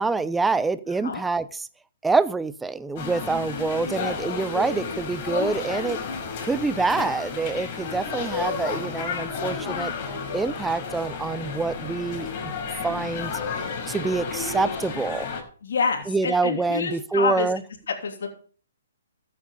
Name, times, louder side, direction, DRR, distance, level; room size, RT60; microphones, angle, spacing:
voice 1, 0.0-1.7 2.0-6.0 6.4-9.9 10.3-12.5 12.8-13.3 13.9-15.3 16.1-17.6, right 4 dB, 5° right, 15 dB, 0.7 m, -26 dB
sound 1, 3.0-15.4, left 5 dB, 40° left, 4.8 m, -32 dB
voice 2, 15.6-17.5 18.0-18.3, left 5 dB, 65° left, 2 dB, 3.1 m, -27 dB
13.5 x 8.6 x 5.2 m, 0.42 s
hypercardioid pair, 135°, 0 cm